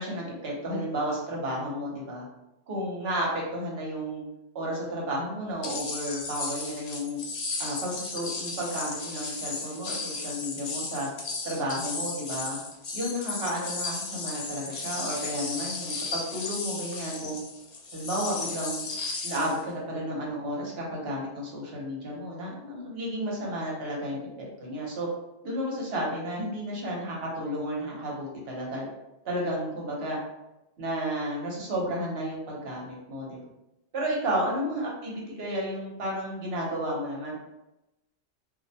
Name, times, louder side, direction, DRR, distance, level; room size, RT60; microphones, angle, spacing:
voice 1, 0.0-2.2 2.7-4.2 4.5-7.2 7.6-11.1 11.4-12.6 12.9-17.4 17.9-18.8 19.2-25.1 25.4-28.9 29.2-30.2 30.8-33.4 33.9-37.4, equal, 60° right, -3 dB, 0.9 m, -32 dB
sound 1, 5.6-19.6, left 3 dB, 70° left, 0.3 m, -35 dB
2.5 x 2.1 x 2.6 m, 0.92 s
omnidirectional pair, 1.2 m